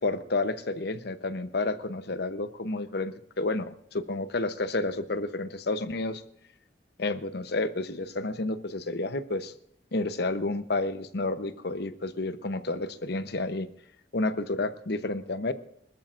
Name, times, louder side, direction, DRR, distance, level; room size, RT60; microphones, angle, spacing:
voice 1, 0.0-6.2 7.0-9.5 9.9-13.7 14.1-15.5, left 2 dB, 60° left, 11 dB, 0.9 m, -30 dB
24.5 x 13.5 x 2.6 m, 0.69 s
head